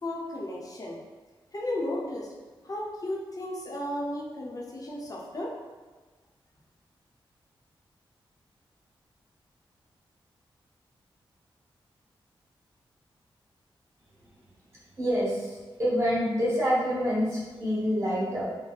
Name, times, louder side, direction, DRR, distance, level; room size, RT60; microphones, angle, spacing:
voice 1, 0.0-1.0 1.5-2.3 2.6-5.5, left 1 dB, 40° left, -3 dB, 0.8 m, -34 dB
voice 2, 15.0-18.4, equal, 30° right, -8 dB, 1.4 m, -27 dB
3.4 x 2.2 x 3.9 m, 1.3 s
wide cardioid pair, 80°, 9 cm